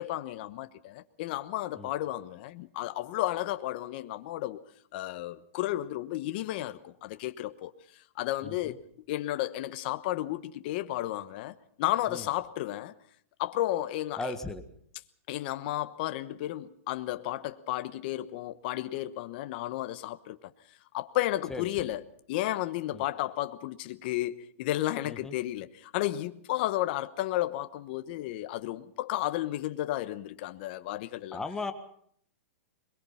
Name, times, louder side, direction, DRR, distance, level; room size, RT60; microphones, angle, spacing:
voice 1, 0.0-4.6 4.9-7.7 8.2-8.8 9.1-12.9 13.4-14.3 15.3-20.4 20.9-22.0 22.3-31.4, left 15 dB, 45° left, 1.1 m, -33 dB
voice 2, 8.4-8.8 12.1-12.3 14.2-14.6 21.5-21.9 22.9-23.0 25.0-25.3 31.3-31.7, left 3 dB, 5° left, 1.6 m, -37 dB
22.5 x 22.0 x 5.8 m
hypercardioid pair, 150°, 7 cm